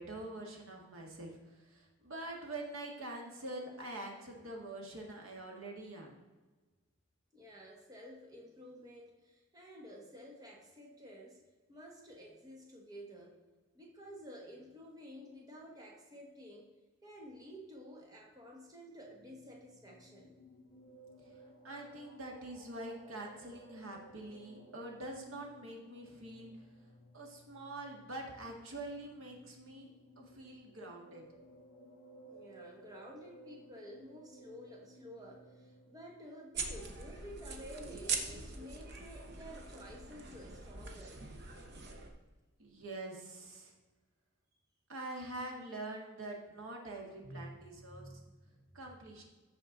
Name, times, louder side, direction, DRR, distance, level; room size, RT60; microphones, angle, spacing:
voice 1, 0.0-1.4 1.7-6.2 21.6-26.5 27.1-29.9 30.2-31.3 42.6-43.7 44.9-48.1 48.7-49.2, right 2 dB, 70° right, 0 dB, 1.8 m, -45 dB
voice 2, 7.3-11.4 11.7-13.4 13.7-16.7 17.0-20.4 32.2-41.2 47.2-48.6, equal, 15° right, -1 dB, 1.1 m, -52 dB
sound 1, 18.9-36.2, right 1 dB, 65° left, 1.9 m, -59 dB
sound 2, 36.5-42.1, right 4 dB, 50° right, 0.9 m, -42 dB
13.5 x 4.6 x 3.9 m, 1.2 s
head